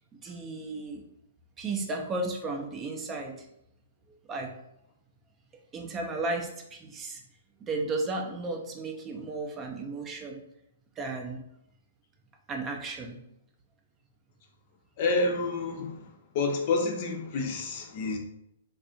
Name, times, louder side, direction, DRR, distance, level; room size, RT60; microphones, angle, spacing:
voice 1, 0.1-1.0 1.6-3.5 4.3-4.5 5.7-7.2 7.6-10.4 11.0-11.4 12.5-13.2, right 2 dB, 20° right, 2 dB, 0.5 m, -34 dB
voice 2, 15.0-16.1 16.3-18.2, left 3 dB, 45° left, 2 dB, 0.6 m, -28 dB
3.3 x 2.4 x 2.6 m, 0.79 s
figure-of-eight pair, 115°, 0 cm